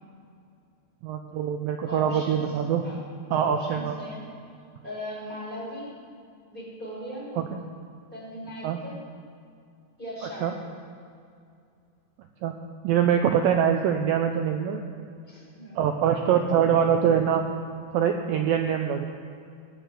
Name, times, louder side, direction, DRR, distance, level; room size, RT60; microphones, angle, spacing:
voice 1, 1.0-2.9 3.3-4.0 7.4-7.5 8.6-8.8 10.4-10.5 12.4-12.6 12.8-14.8 15.8-17.5 17.9-19.1, right 8 dB, 90° right, 4 dB, 2.0 m, -24 dB
voice 2, 1.8-2.4 2.8-3.0 3.3-4.2 4.8-5.9 6.5-7.3 8.1-9.0 10.0-10.5 15.2-15.8, equal, 10° left, -6 dB, 5.1 m, -38 dB
17.5 x 10.0 x 7.7 m, 2.4 s
omnidirectional pair, 4.9 m